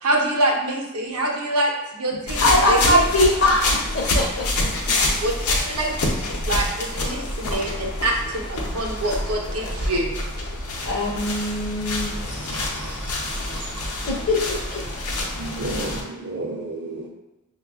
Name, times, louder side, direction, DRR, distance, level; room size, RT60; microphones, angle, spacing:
voice 1, 0.0-3.0 5.2-6.0 6.4-10.1, right 1 dB, 85° right, 0 dB, 0.8 m, -25 dB
sound 1, 2.3-16.0, left 2 dB, 85° left, 0.7 m, -27 dB
voice 2, 2.4-4.7 10.8-12.2 14.0-14.8, left 1 dB, 50° left, -4 dB, 0.5 m, -21 dB
voice 3, 12.3-13.1 15.4-17.1, right 2 dB, 50° right, -4 dB, 0.4 m, -32 dB
6.0 x 2.3 x 2.3 m, 0.99 s
head